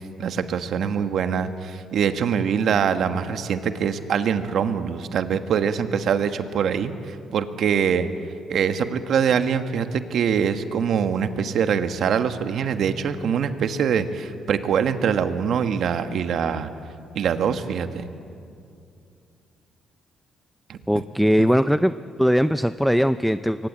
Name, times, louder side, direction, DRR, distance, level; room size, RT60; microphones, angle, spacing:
voice 1, 0.2-8.1 8.5-16.7 17.1-18.1 20.7-21.0 21.4-21.5, right 7 dB, 70° right, 9 dB, 1.4 m, -24 dB
voice 2, 20.9-21.9 22.2-23.7, equal, ahead, 12 dB, 0.5 m, -20 dB
23.5 x 18.5 x 8.6 m, 2.5 s
cardioid pair, 90°, 0 cm